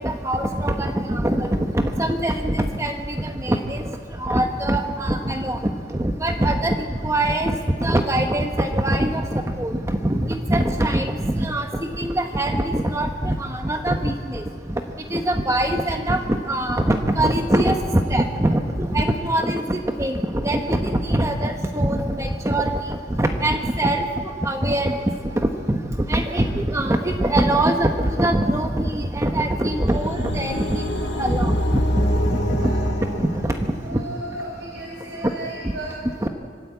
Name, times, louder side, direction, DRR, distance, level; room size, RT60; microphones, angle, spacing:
voice 1, 0.0-1.5 1.7-3.8 4.2-5.7 6.0-6.7 7.0-11.7 12.0-14.4 15.1-24.1 24.4-25.0 25.4-25.8 26.1-30.8 31.2-31.6 32.3-32.6 33.4-33.5 33.9-34.0 36.2-36.3, right 1 dB, 15° right, 4 dB, 1.0 m, -22 dB
sound 1, 29.4-34.0, equal, 75° left, 1.6 m, -25 dB
voice 2, 33.8-36.0, right 1 dB, 90° right, -4 dB, 5.4 m, -35 dB
25.5 x 13.0 x 8.4 m, 2.1 s
head